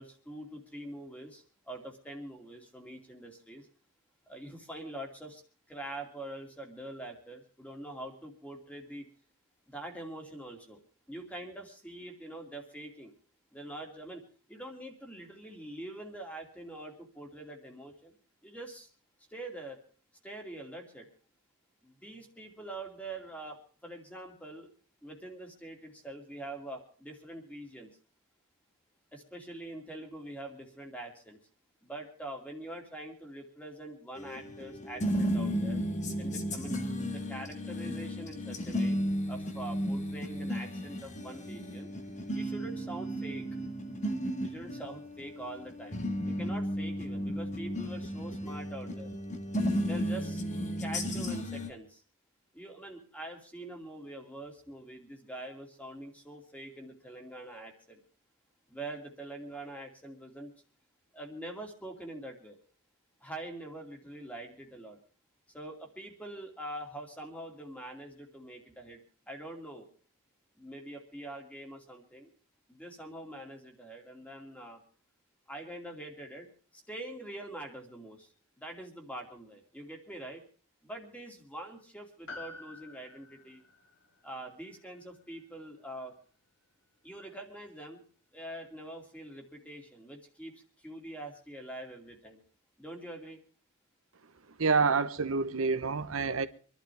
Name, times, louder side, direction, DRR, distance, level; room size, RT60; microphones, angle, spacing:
voice 1, 0.0-3.7 4.3-5.4 5.7-9.1 9.7-10.8 11.1-13.1 13.5-14.2 14.5-18.1 18.4-18.9 19.3-19.8 20.2-21.1 21.8-24.7 25.0-27.9 29.1-31.4 31.8-35.8 36.2-39.0 39.3-41.9 42.3-43.4 44.4-46.0 46.3-49.1 49.8-50.4 50.8-52.0 52.5-58.0 58.7-60.5 61.1-62.6 63.2-65.0 65.5-69.0 69.3-69.9 70.6-72.3 72.7-74.8 75.5-76.5 76.7-78.3 78.6-80.4 80.8-83.6 84.2-86.1 87.0-88.0 88.3-92.4 92.8-93.4, right 1 dB, 5° left, 2.6 m, -44 dB
sound 1, 34.2-51.7, equal, 35° left, 1.6 m, -34 dB
Piano, 82.3-86.9 87.1-87.2, left 3 dB, 60° left, 3.7 m, -51 dB
voice 2, 94.6-96.5, right 4 dB, 75° right, 1.0 m, -27 dB
26.0 x 12.0 x 3.4 m
head